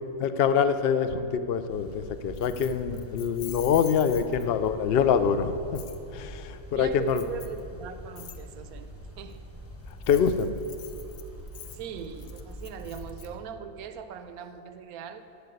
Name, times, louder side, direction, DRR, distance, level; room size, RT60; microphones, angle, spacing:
voice 1, 0.2-5.8 6.1-7.2 10.1-10.5, left 7 dB, 65° left, 11 dB, 0.6 m, -25 dB
sound 1, 1.7-13.4, equal, 10° left, 0.9 m, -44 dB
Keys jangling, 2.4-4.7 5.8-6.0 7.1-7.6 8.2-8.4 9.9-13.3, left 9 dB, 80° left, 1.3 m, -46 dB
voice 2, 6.7-8.9 9.2-9.4 11.7-15.2, right 7 dB, 75° right, 10 dB, 1.2 m, -40 dB
11.5 x 8.2 x 7.8 m, 2.7 s
omnidirectional pair, 1.6 m